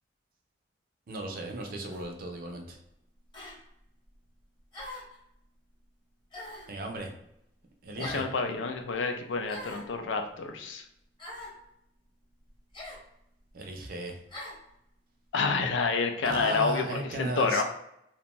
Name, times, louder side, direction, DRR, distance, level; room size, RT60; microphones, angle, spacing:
voice 1, 1.1-2.8 6.7-7.1 7.8-8.2 13.5-14.2 16.2-17.6, right 2 dB, 50° right, 3 dB, 0.4 m, -35 dB
sound 1, 1.9-2.1 3.3-3.6 4.7-5.2 6.3-6.7 8.0-8.3 9.5-9.9 11.2-11.6 12.7-13.0 14.3-14.6, left 1 dB, 25° left, 0.8 m, -42 dB
voice 2, 8.0-10.8 15.3-17.6, left 4 dB, 90° left, 5 dB, 0.4 m, -29 dB
2.5 x 2.1 x 2.9 m, 0.79 s
head